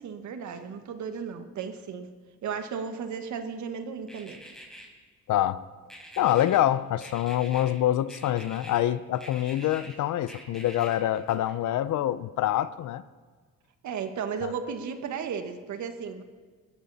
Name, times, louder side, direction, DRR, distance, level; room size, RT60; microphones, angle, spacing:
voice 1, 0.0-2.1 2.4-4.4 13.8-16.2, right 6 dB, 70° right, 1.6 m, -34 dB
sound 1, 4.1-4.9 5.9-6.6 7.0-7.8 8.1-8.8 9.1-9.9 10.3-11.7, equal, ahead, 5.5 m, -46 dB
voice 2, 5.3-5.6 6.2-13.0 14.4-14.5, left 12 dB, 75° left, 0.7 m, -26 dB
21.0 x 14.0 x 4.2 m
cardioid pair, 90°, 30 cm